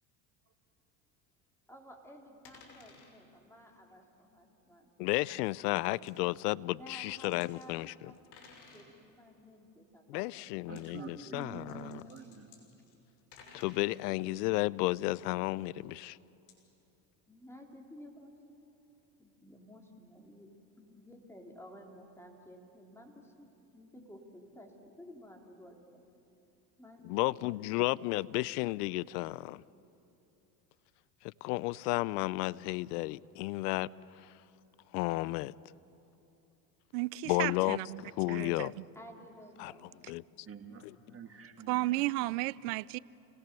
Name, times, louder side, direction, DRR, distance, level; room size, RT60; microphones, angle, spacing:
voice 1, 1.7-4.9 6.7-8.2 8.7-10.5 11.0-11.3 11.7-12.3 17.3-18.3 19.2-26.0 26.8-28.1 38.9-40.1, equal, 5° left, 3.4 m, -54 dB
sound 1, 2.4-3.1 5.2-5.3 6.1-6.2 7.0-7.7 8.1-8.9 10.6-10.9 11.4-14.0 16.5-16.6, left 5 dB, 60° left, 6.4 m, -56 dB
voice 2, 5.0-8.1 10.1-12.0 13.5-16.2 27.0-29.6 31.2-33.9 34.2-34.3 34.9-35.5 37.3-38.7 39.6-39.7 40.1-40.2, left 20 dB, 85° left, 0.6 m, -33 dB
voice 3, 10.7-12.8 40.4-42.4, right 6 dB, 30° right, 2.3 m, -48 dB
voice 4, 36.9-38.0 38.3-38.8 41.7-43.0, right 19 dB, 75° right, 0.6 m, -33 dB
29.5 x 19.0 x 6.8 m
supercardioid pair, 105°, 46 cm